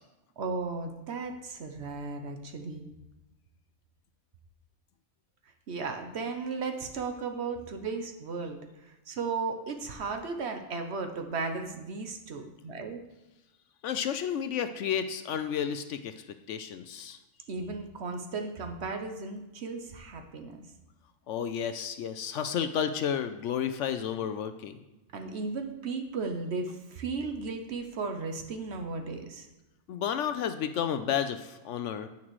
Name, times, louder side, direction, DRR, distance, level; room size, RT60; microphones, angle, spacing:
voice 1, 0.4-2.8 5.7-13.0 17.5-20.6 25.1-29.5, right 4 dB, 55° right, 5 dB, 1.0 m, -35 dB
voice 2, 13.8-17.2 21.3-24.8 29.9-32.1, left 8 dB, 70° left, 9 dB, 0.8 m, -32 dB
9.7 x 8.7 x 3.1 m, 1.0 s
omnidirectional pair, 1.4 m